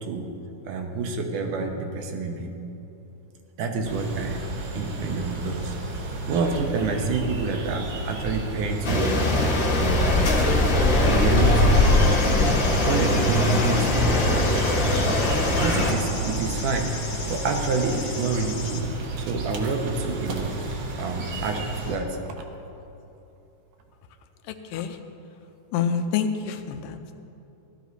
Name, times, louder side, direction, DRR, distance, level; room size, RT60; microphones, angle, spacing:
voice 1, 0.7-2.5 3.6-4.4 4.7-5.8 6.3-9.3 9.8-10.2 11.1-12.3 12.8-14.9 15.6-17.0 17.3-18.9 19.2-20.6 21.0-22.2, right 3 dB, 75° right, 3 dB, 2.5 m, -28 dB
sound 1, 3.8-22.0, right 2 dB, 60° right, 1.3 m, -33 dB
sound 2, 8.8-15.9, left 2 dB, 40° left, 1.6 m, -21 dB
sound 3, 11.7-18.8, left 5 dB, 55° left, 2.3 m, -38 dB
voice 2, 25.7-27.2, left 7 dB, 85° left, 7 dB, 2.4 m, -27 dB
15.5 x 12.5 x 4.1 m, 2.9 s
omnidirectional pair, 3.8 m